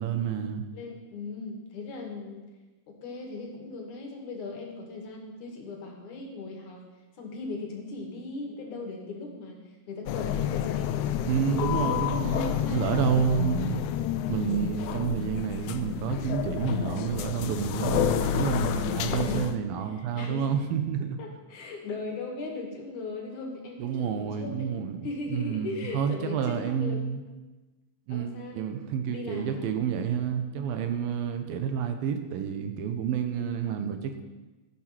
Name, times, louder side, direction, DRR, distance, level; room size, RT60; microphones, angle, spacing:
voice 1, 0.0-0.7 11.2-13.8 14.3-21.2 23.8-25.0 25.3-27.2 28.1-34.2, right 7 dB, 90° right, 7 dB, 2.9 m, -29 dB
voice 2, 0.7-2.5 2.9-6.8 7.2-9.6 9.9-13.2 19.0-20.7 21.2-24.7 25.0-27.2 28.1-29.7, left 3 dB, 60° left, 1 dB, 3.4 m, -38 dB
sound 1, 10.1-19.5, left 10 dB, 80° left, 1.9 m, -29 dB
15.5 x 9.3 x 6.0 m, 1.2 s
omnidirectional pair, 4.0 m